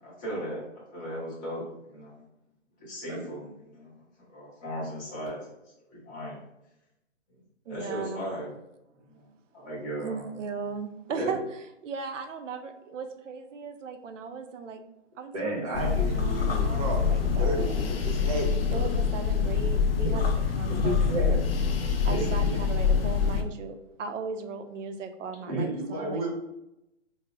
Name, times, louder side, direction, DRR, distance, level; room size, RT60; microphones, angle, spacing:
voice 1, 0.0-2.2 2.8-3.9 4.3-5.5 5.9-6.4 7.3-7.4 7.7-8.5 9.1-9.3 9.5-10.3 17.4-17.6, equal, 15° left, -7 dB, 0.8 m, -37 dB
voice 2, 7.7-8.3 10.0-14.8 15.2-17.8 18.7-21.4 22.0-26.3, right 5 dB, 85° right, 8 dB, 0.6 m, -37 dB
voice 3, 15.3-18.9 20.0-20.1 20.7-21.5 22.1-22.3 25.5-26.3, right 1 dB, 30° right, -2 dB, 0.7 m, -32 dB
sound 1, 15.7-23.4, left 6 dB, 55° left, 0.5 m, -25 dB
4.7 x 2.0 x 2.4 m, 0.87 s
hypercardioid pair, 160°, 36 cm